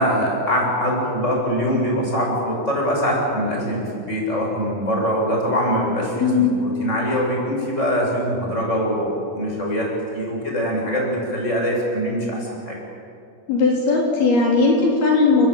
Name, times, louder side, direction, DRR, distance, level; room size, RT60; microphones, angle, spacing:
voice 1, 0.0-9.9 10.1-12.8, equal, 15° left, -2 dB, 8.2 m, -23 dB
voice 2, 6.2-6.5 13.5-15.5, left 4 dB, 75° left, -2 dB, 5.9 m, -17 dB
30.0 x 21.0 x 9.0 m, 2.5 s
omnidirectional pair, 4.5 m